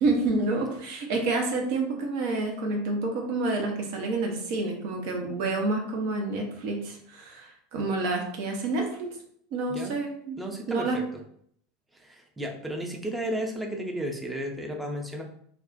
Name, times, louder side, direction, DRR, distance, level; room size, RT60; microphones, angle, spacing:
voice 1, 0.0-9.1 9.5-10.4 10.7-11.0, right 3 dB, 55° right, 2 dB, 0.7 m, -28 dB
voice 2, 10.4-11.0 11.9-15.2, equal, 5° right, 1 dB, 0.6 m, -33 dB
2.3 x 2.3 x 3.7 m, 0.65 s
figure-of-eight pair, 80°, 0 cm